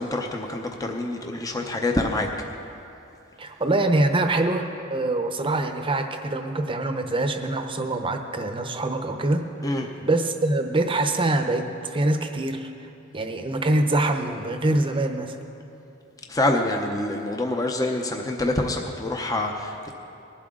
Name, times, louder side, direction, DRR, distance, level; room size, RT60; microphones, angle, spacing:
voice 1, 0.0-2.3 9.6-9.9 16.3-19.9, left 2 dB, 15° left, 3 dB, 0.7 m, -26 dB
voice 2, 3.4-9.7 10.0-12.7 13.1-15.4, right 2 dB, 25° right, 6 dB, 0.8 m, -24 dB
19.5 x 12.0 x 3.8 m, 2.7 s
head